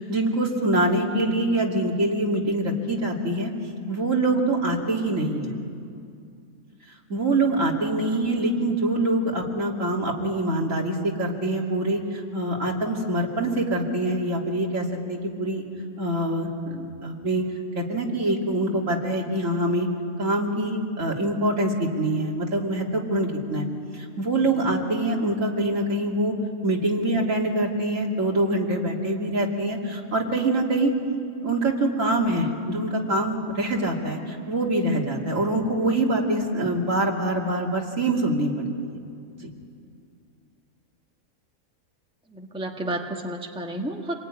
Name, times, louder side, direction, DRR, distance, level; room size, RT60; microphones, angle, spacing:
voice 1, 0.0-3.5 3.9-5.5 7.1-15.6 16.0-17.4 17.7-19.9 20.2-23.7 23.9-26.3 26.6-30.9 31.4-38.5 39.4-39.5, right 1 dB, 60° right, -1 dB, 3.2 m, -24 dB
voice 2, 42.3-44.1, right 1 dB, 5° right, 2 dB, 1.4 m, -31 dB
27.0 x 20.5 x 9.8 m, 2.4 s
omnidirectional pair, 1.5 m